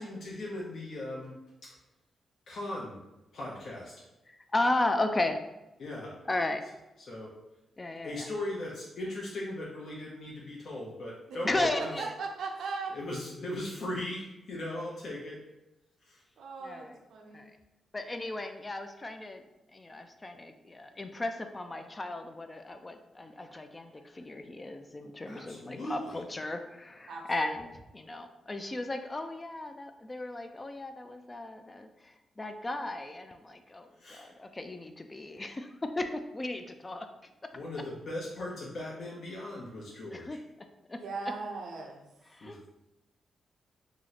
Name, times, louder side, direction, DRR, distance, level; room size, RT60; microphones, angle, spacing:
voice 1, 0.0-1.3 2.5-3.0 3.3-3.9 5.8-6.1 7.0-7.3 8.0-12.0 12.9-15.4 16.0-16.2 25.3-26.2 34.0-34.3 37.5-40.4 42.4-42.7, left 1 dB, 60° left, -4 dB, 0.6 m, -38 dB
voice 2, 4.3-5.4 6.3-6.6 7.8-8.3 11.4-12.1 16.6-17.0 17.3-17.5 17.9-19.4 19.7-35.7 36.0-37.1 40.1-40.4 40.9-41.0 42.3-42.6, left 2 dB, 30° left, 6 dB, 0.3 m, -35 dB
voice 3, 11.8-12.9 16.4-17.4 27.1-27.5 40.9-42.0, right 4 dB, 75° right, 1 dB, 0.6 m, -38 dB
3.0 x 2.0 x 3.9 m, 0.96 s
cardioid pair, 60°, 0 cm